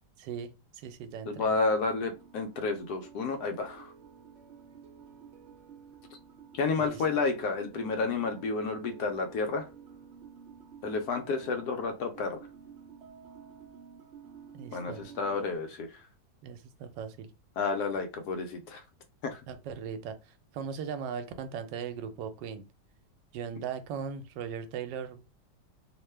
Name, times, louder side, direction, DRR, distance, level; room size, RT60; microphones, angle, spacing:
voice 1, 0.2-1.5 6.8-7.0 14.5-15.1 16.4-17.3 19.5-22.6 23.3-25.2, right 7 dB, 85° right, 1.2 m, -38 dB
voice 2, 1.3-3.9 6.5-9.7 10.8-12.4 14.7-15.9 17.6-18.8 19.2-19.4, left 4 dB, 70° left, 1.0 m, -31 dB
sound 1, 2.1-15.6, right 6 dB, 60° right, 0.8 m, -50 dB
3.0 x 2.1 x 3.2 m
omnidirectional pair, 1.9 m